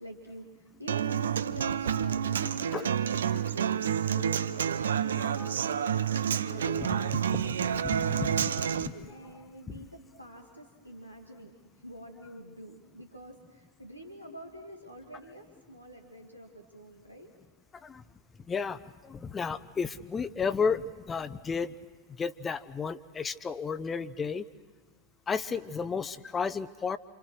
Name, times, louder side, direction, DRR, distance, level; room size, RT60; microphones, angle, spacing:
voice 1, 0.0-2.9 3.3-7.0 8.0-11.5 11.8-17.3, equal, 90° right, 2 dB, 2.1 m, -46 dB
Human voice / Acoustic guitar, 0.9-8.9, right 8 dB, 65° right, 0.7 m, -29 dB
voice 2, 5.1-5.5 6.5-8.3 8.8-8.9 9.7-9.8 17.8-18.0 18.5-21.7 22.2-24.5 25.3-27.0, left 5 dB, 20° left, 14 dB, 0.8 m, -33 dB
28.5 x 27.5 x 6.4 m, 1.4 s
figure-of-eight pair, 90°, 0 cm